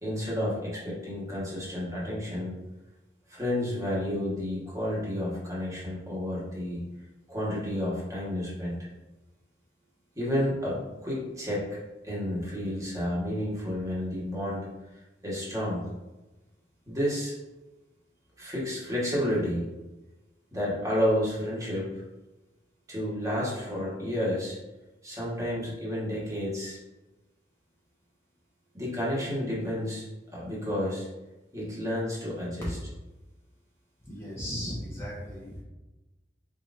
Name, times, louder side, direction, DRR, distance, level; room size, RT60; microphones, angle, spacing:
voice 1, 0.0-2.5 3.3-6.8 7.3-8.8 10.1-11.6 12.0-14.7 15.2-15.9 16.9-17.3 18.4-19.6 20.5-21.9 22.9-24.6 25.0-26.8 28.7-30.0 30.3-31.1 31.5-32.8, equal, 20° right, -6 dB, 1.3 m, -30 dB
voice 2, 34.1-35.6, equal, 15° left, -7 dB, 1.0 m, -36 dB
4.5 x 3.8 x 2.5 m, 1.1 s
head